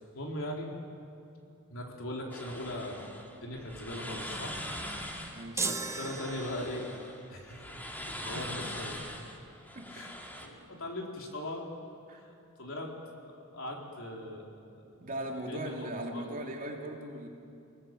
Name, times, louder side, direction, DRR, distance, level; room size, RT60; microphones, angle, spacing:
voice 1, 0.1-0.7 1.7-3.1 3.4-4.6 5.5-6.9 7.3-7.6 8.1-9.0 9.9-10.1 10.4-11.7 12.1-12.3 12.6-13.0 13.3-15.1 15.5-16.3, left 1 dB, 65° left, -1 dB, 4.1 m, -40 dB
sound 1, 2.3-10.5, equal, 10° left, 2.2 m, -42 dB
voice 2, 5.3-5.6 8.3-8.4 9.7-10.1 12.1-12.2 15.0-17.3, right 1 dB, 40° right, 0 dB, 3.0 m, -39 dB
sound 2, 5.6-7.1, right 4 dB, 15° right, 0.9 m, -36 dB
28.5 x 19.0 x 7.9 m, 2.7 s
head